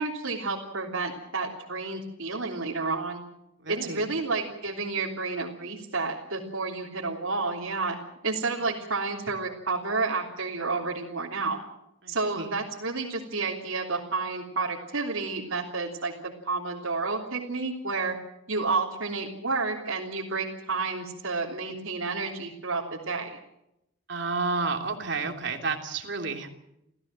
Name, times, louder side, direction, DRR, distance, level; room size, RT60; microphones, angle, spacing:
voice 1, 0.0-3.2 3.7-8.0 8.2-11.6 12.1-18.1 18.5-23.4, right 3 dB, 80° right, -3 dB, 3.3 m, -30 dB
voice 2, 3.6-4.0 12.0-12.5 24.1-26.5, right 4 dB, 60° right, 3 dB, 3.1 m, -31 dB
28.0 x 16.0 x 7.7 m, 0.85 s
head